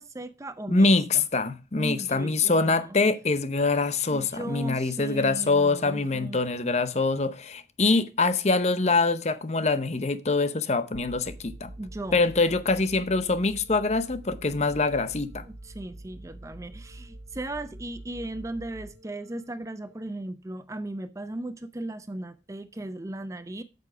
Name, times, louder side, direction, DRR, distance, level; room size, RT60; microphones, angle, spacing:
voice 1, 0.0-0.9 1.8-3.0 4.1-6.4 11.8-12.2 15.4-23.6, right 1 dB, 15° right, 0.5 m, -37 dB
voice 2, 0.7-11.7 12.1-15.4, left 3 dB, 40° left, 0.7 m, -24 dB
sound 1, 10.9-19.9, right 1 dB, 75° right, 1.6 m, -45 dB
8.3 x 6.9 x 4.9 m
head